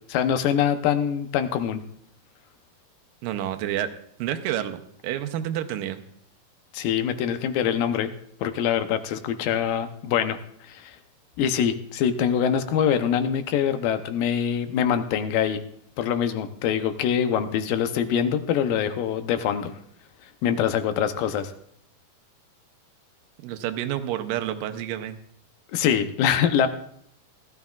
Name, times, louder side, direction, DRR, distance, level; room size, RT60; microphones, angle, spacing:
voice 1, 0.1-1.8 6.7-8.1 8.4-11.0 11.4-15.6 16.0-19.8 20.4-21.5 25.7-26.7, left 8 dB, 90° left, 9 dB, 2.6 m, -24 dB
voice 2, 3.2-3.9 4.2-6.0 23.4-25.2, right 11 dB, 85° right, 7 dB, 2.4 m, -29 dB
18.0 x 13.0 x 2.4 m, 0.69 s
omnidirectional pair, 3.9 m